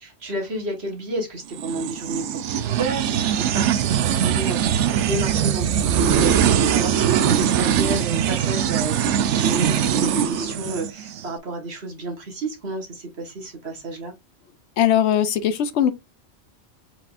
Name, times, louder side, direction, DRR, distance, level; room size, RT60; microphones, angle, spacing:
voice 1, 0.0-14.1, right 2 dB, 65° right, 1.7 m, -31 dB
sound 1, 1.5-11.2, right 9 dB, 80° right, 0.9 m, -21 dB
voice 2, 14.8-15.9, left 10 dB, 70° left, 0.9 m, -19 dB
4.6 x 3.9 x 2.5 m
omnidirectional pair, 1.2 m